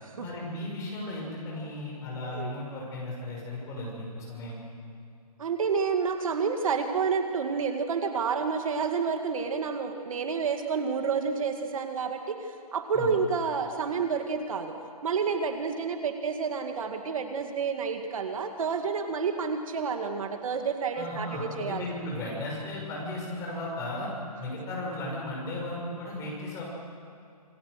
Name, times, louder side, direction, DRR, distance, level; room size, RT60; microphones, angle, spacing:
voice 1, 0.2-4.6 12.9-13.1 20.9-24.1 24.4-26.6, left 1 dB, 15° left, -3 dB, 6.1 m, -35 dB
voice 2, 5.4-14.7 15.0-22.1, right 5 dB, 55° right, 5 dB, 2.1 m, -29 dB
27.5 x 21.5 x 6.5 m, 2.5 s
hypercardioid pair, 165°, 20 cm